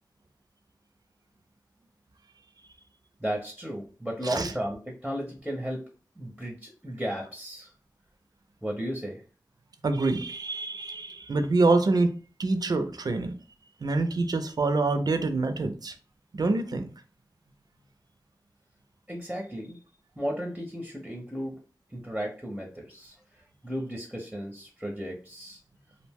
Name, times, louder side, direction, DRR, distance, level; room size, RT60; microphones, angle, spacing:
voice 1, 3.2-5.8 6.2-7.7 8.6-9.2 19.1-19.8 20.2-21.6 21.9-25.6, equal, 5° right, 0 dB, 0.6 m, -34 dB
voice 2, 9.8-12.1 12.4-13.3 13.8-15.9 16.3-16.9, right 3 dB, 60° right, 8 dB, 0.4 m, -26 dB
2.5 x 2.1 x 3.4 m, 0.38 s
wide cardioid pair, 75°, 8 cm